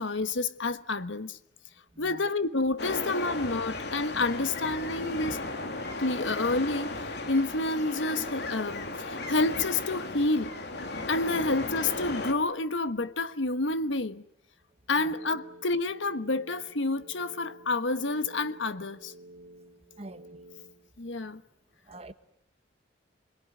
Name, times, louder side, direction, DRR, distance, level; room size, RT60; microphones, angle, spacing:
voice 1, 0.0-1.4 2.0-5.4 6.0-6.9 7.3-10.5 11.1-14.2 14.9-19.1 21.0-21.4, left 3 dB, 80° left, 1.4 m, -29 dB
voice 2, 1.9-2.3 14.9-15.2 20.0-20.3 21.9-22.1, right 2 dB, 35° right, 1.5 m, -45 dB
sound 1, 2.8-12.3, left 2 dB, 60° left, 3.0 m, -35 dB
sound 2, 15.1-20.7, right 1 dB, 75° right, 4.1 m, -51 dB
27.5 x 22.5 x 9.6 m
head